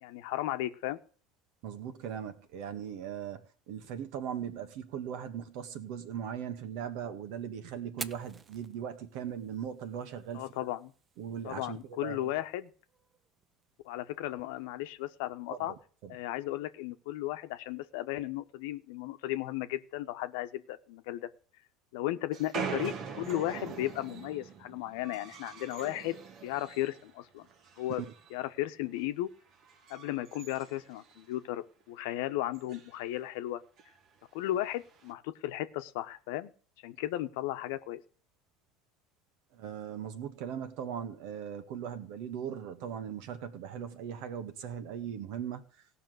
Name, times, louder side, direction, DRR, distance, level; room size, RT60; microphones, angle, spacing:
voice 1, 0.0-1.0 10.3-10.9 11.4-12.7 13.8-15.7 16.1-21.3 21.9-26.2 26.4-27.5 27.8-28.0 28.3-29.3 29.9-33.6 34.3-36.5 36.8-38.0, left 15 dB, 70° left, 1.0 m, -35 dB
voice 2, 1.6-10.5 11.2-12.2 15.5-16.2 27.9-28.1 39.5-45.6, right 8 dB, 65° right, 1.7 m, -39 dB
Fire, 7.8-15.8, right 5 dB, 30° right, 0.8 m, -51 dB
sound 1, 22.3-27.1 27.4-28.4 28.7-29.0 29.5-31.5 31.8-31.9 32.1-32.2 32.5-32.9 33.8-33.9 34.7-35.1, right 6 dB, 50° right, 1.7 m, -43 dB
17.0 x 5.9 x 7.9 m
hypercardioid pair, 80°, 0 cm